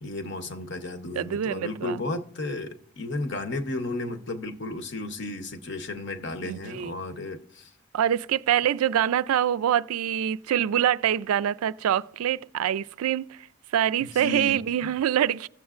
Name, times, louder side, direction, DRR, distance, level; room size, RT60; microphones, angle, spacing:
voice 1, 0.0-7.7 14.0-14.6, left 2 dB, 55° left, 0.8 m, -33 dB
voice 2, 1.1-2.0 6.4-6.9 7.9-13.4 13.7-15.5, right 10 dB, 85° right, 0.3 m, -25 dB
16.0 x 7.2 x 2.4 m
head